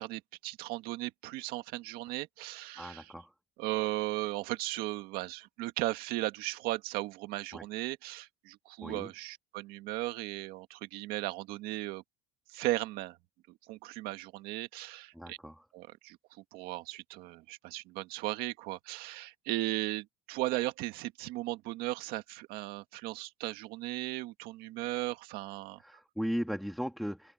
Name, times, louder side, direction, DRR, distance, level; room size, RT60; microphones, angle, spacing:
voice 1, 0.0-3.1 3.6-12.0 12.5-13.2 13.7-15.4 15.7-16.2 16.5-25.8, right 18 dB, 65° right, 1.8 m, -36 dB
voice 2, 2.7-3.3 7.5-7.6 8.8-9.1 15.1-15.6 25.8-27.3, equal, ahead, 1.7 m, -37 dB
cardioid pair, 150°, 17 cm